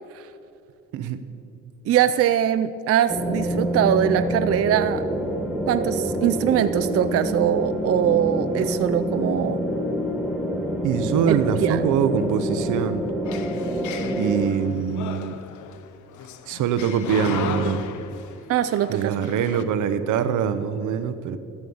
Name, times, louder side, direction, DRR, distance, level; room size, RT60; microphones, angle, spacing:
voice 1, 1.9-5.0 5.7-9.6 11.3-11.8 18.5-19.2, right 10 dB, 50° right, 11 dB, 0.4 m, -22 dB
sound 1, 3.1-14.5, equal, ahead, 1.6 m, -26 dB
voice 2, 10.8-13.1 14.2-15.4 16.5-17.8 18.9-21.4, right 8 dB, 80° right, 11 dB, 0.8 m, -24 dB
sound 2, 13.2-19.6, left 9 dB, 75° left, 0.7 m, -36 dB
13.0 x 6.5 x 7.0 m, 2.7 s
cardioid pair, 90°, 30 cm